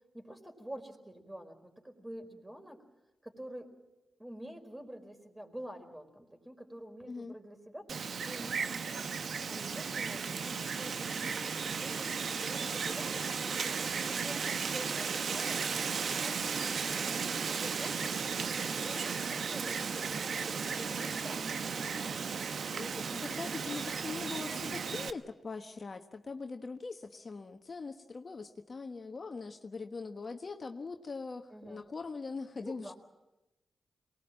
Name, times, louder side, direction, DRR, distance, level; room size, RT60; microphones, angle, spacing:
voice 1, 0.1-2.8 3.2-3.7 4.2-12.1 12.4-21.4 31.5-31.9 32.6-32.9, right 1 dB, 15° right, 5 dB, 4.8 m, -48 dB
Wind, 7.9-25.1, right 5 dB, 70° right, 0.9 m, -35 dB
voice 2, 22.7-32.9, left 4 dB, 50° left, 5 dB, 1.3 m, -42 dB
23.5 x 20.0 x 7.6 m, 0.99 s
supercardioid pair, 45°, 0 cm